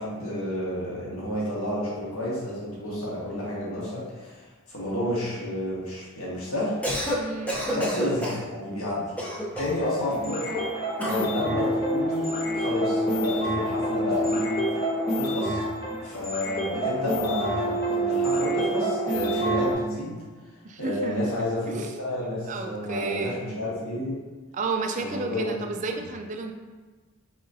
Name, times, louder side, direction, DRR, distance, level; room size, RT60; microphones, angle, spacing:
voice 1, 0.0-6.8 7.7-9.1 9.6-10.7 11.0-14.5 15.1-15.6 16.0-20.2 20.8-24.2 25.0-25.6, left 1 dB, 90° left, -7 dB, 1.4 m, -30 dB
Cough, 6.7-7.2 7.5-8.5 9.2-9.8 11.0-11.3, equal, 5° left, 0.6 m, -29 dB
voice 2, 7.2-7.6 20.6-21.2 21.7-21.9 22.5-23.4 24.5-26.5, right 4 dB, 35° right, 4 dB, 0.3 m, -31 dB
sound 1, 9.5-19.7, right 1 dB, 50° left, 1.1 m, -27 dB
4.2 x 3.8 x 2.6 m, 1.4 s
head